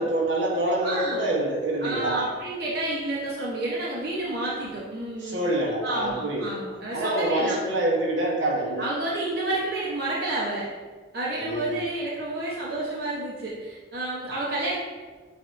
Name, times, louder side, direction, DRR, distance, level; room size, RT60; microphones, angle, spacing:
voice 1, 0.0-2.2 5.2-6.5 6.9-8.9 11.4-11.8, right 1 dB, 80° right, -3 dB, 1.0 m, -26 dB
voice 2, 0.8-1.2 1.8-5.4 5.8-7.6 8.8-10.7 11.1-14.8, right 2 dB, 55° right, -6 dB, 0.8 m, -30 dB
7.6 x 2.6 x 2.5 m, 1.4 s
head